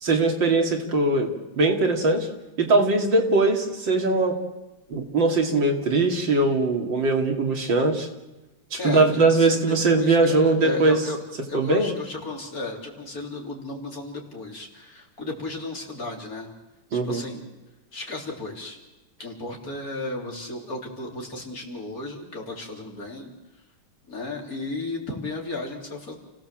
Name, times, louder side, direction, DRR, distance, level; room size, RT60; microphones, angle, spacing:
voice 1, 0.0-2.3 2.6-4.3 4.9-8.1 8.7-11.0 11.5-11.9 16.9-17.2, right 3 dB, 80° right, 3 dB, 3.4 m, -21 dB
voice 2, 8.8-16.5 17.0-17.5 17.9-18.8 19.2-23.3 24.1-26.2, left 2 dB, 50° left, 1 dB, 4.0 m, -34 dB
30.0 x 17.0 x 7.6 m, 1.0 s
omnidirectional pair, 2.0 m